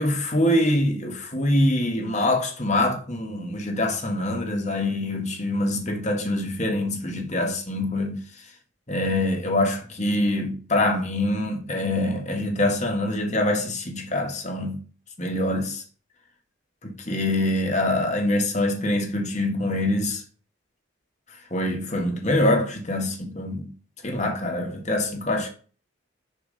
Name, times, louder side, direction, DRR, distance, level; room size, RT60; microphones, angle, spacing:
voice 1, 0.0-8.2 8.9-14.8 15.2-15.8 16.8-20.2 21.5-23.7 24.0-25.5, left 1 dB, 35° left, 1.7 m, -24 dB
6.8 x 4.7 x 5.5 m
head